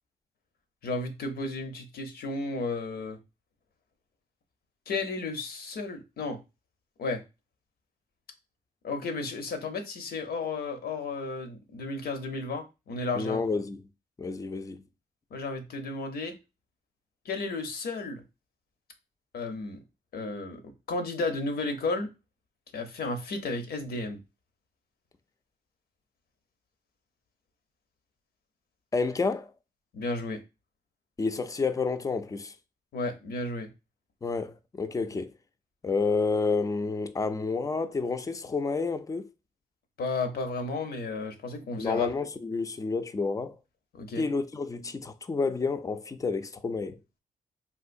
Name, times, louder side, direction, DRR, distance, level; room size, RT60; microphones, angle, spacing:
voice 1, 0.8-3.2 4.9-6.4 7.0-7.2 8.8-13.4 15.3-16.3 17.2-18.2 19.3-19.8 20.1-22.1 22.7-24.2 29.9-30.4 32.9-33.7 40.0-42.1 43.9-44.3, left 3 dB, 75° left, 0.7 m, -33 dB
voice 2, 13.1-13.8 14.2-14.8 28.9-29.5 31.2-32.5 34.2-35.3 35.8-39.3 41.8-43.6 44.2-47.0, left 4 dB, 20° left, 0.4 m, -29 dB
3.6 x 2.5 x 2.5 m
cardioid pair, 60°, 16 cm